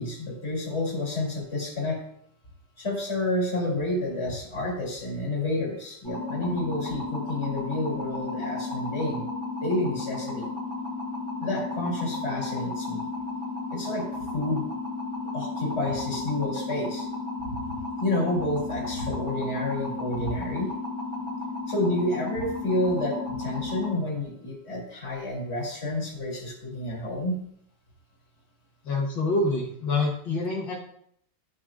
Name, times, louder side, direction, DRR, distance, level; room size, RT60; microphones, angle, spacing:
voice 1, 0.0-2.0 2.8-9.2 9.6-10.5 11.4-13.0 13.7-14.1 14.3-14.6 15.3-17.0 17.4-17.6 18.0-20.7 21.7-27.4, left 1 dB, 35° left, -2 dB, 3.3 m, -29 dB
sound 1, 6.0-23.9, left 3 dB, 15° left, 2.9 m, -33 dB
voice 2, 28.8-30.8, left 2 dB, 70° left, -4 dB, 2.0 m, -26 dB
13.5 x 6.3 x 2.5 m, 0.68 s
omnidirectional pair, 2.1 m